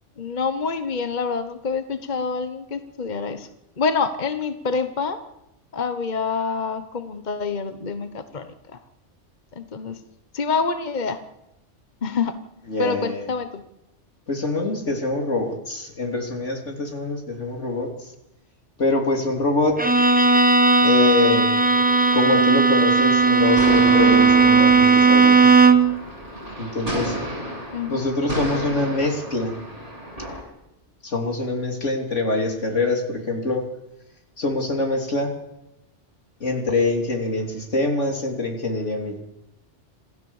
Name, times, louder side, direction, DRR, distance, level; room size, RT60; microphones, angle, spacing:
voice 1, 0.2-3.5 3.8-5.2 5.7-8.5 9.5-10.0 10.3-11.2 12.0-12.3 12.8-13.6 27.7-28.1, left 5 dB, 40° left, 9 dB, 1.2 m, -26 dB
voice 2, 12.7-13.2 14.3-17.9 18.8-19.8 20.8-21.5 22.1-25.5 26.6-27.2 27.9-29.6 31.0-33.6 34.4-35.3 36.4-39.2, left 2 dB, 80° left, 2 dB, 3.7 m, -24 dB
Bowed string instrument, 19.8-26.0, right 4 dB, 10° right, 1.0 m, -16 dB
sound 1, 23.2-30.4, equal, 30° right, 7.5 m, -32 dB
27.0 x 15.0 x 7.3 m, 0.90 s
omnidirectional pair, 1.2 m